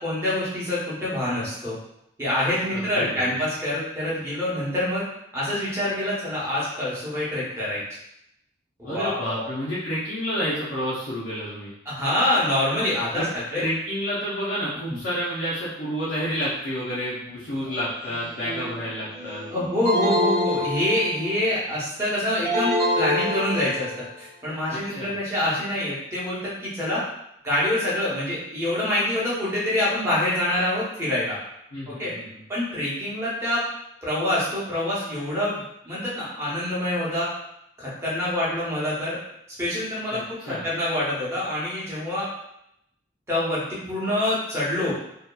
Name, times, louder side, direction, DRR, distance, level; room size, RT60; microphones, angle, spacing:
voice 1, 0.0-1.8 2.2-5.0 5.3-7.8 8.8-9.5 11.9-13.6 14.9-15.0 19.5-27.0 27.4-31.4 31.9-32.1 32.5-33.6 34.0-37.3 37.8-39.2 39.6-40.2 40.4-42.3 43.3-44.9, left 1 dB, 15° right, -8 dB, 0.8 m, -26 dB
voice 2, 2.7-3.4 8.8-11.7 13.1-13.3 13.6-19.5 24.7-25.1 31.7-32.4 40.1-40.6, equal, 60° left, -9 dB, 0.6 m, -30 dB
Speech synthesizer, 17.5-20.5, equal, 35° right, 0.4 m, -41 dB
sound 1, 19.8-21.4 22.4-24.0, left 1 dB, 50° right, 0.8 m, -25 dB
2.7 x 2.3 x 2.2 m, 0.79 s
head